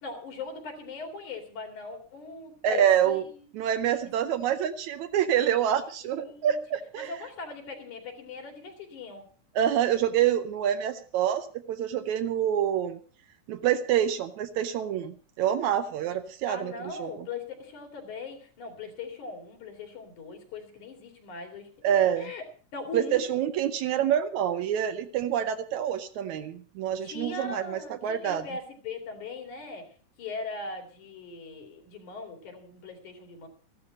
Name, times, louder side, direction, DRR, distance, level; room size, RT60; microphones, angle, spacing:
voice 1, 0.0-3.5 6.0-6.6 7.0-9.3 16.5-22.4 22.7-23.5 27.0-33.5, left 3 dB, 85° left, 4 dB, 4.1 m, -40 dB
voice 2, 2.6-3.2 3.5-7.1 9.6-13.0 13.5-16.7 17.0-17.1 21.8-22.3 22.9-28.4, right 10 dB, 80° right, 9 dB, 2.1 m, -26 dB
14.5 x 12.0 x 5.3 m, 0.41 s
omnidirectional pair, 3.4 m